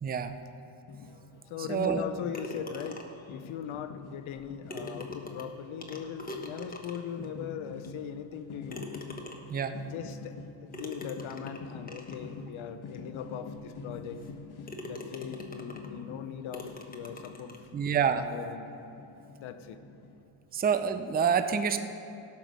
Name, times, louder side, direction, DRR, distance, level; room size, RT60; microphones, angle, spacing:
voice 1, 0.0-0.3 1.7-2.0 9.5-9.7 17.7-18.3 20.5-21.8, right 7 dB, 20° right, 9 dB, 0.5 m, -27 dB
sound 1, 0.9-20.2, left 4 dB, 50° left, 1.3 m, -46 dB
voice 2, 1.5-8.9 9.7-14.2 14.9-17.6 18.1-18.8 19.4-19.8, left 8 dB, 70° left, 10 dB, 0.9 m, -40 dB
sound 2, 2.3-3.3 4.3-4.4 4.7-7.2 7.8-7.9 8.7-9.6 10.7-12.3 12.9-13.0 13.6-13.7 14.2-14.4 14.7-16.0 16.5-17.7, left 2 dB, 15° left, 1.2 m, -43 dB
16.5 x 5.9 x 6.2 m, 2.9 s
cardioid pair, 105°, 50 cm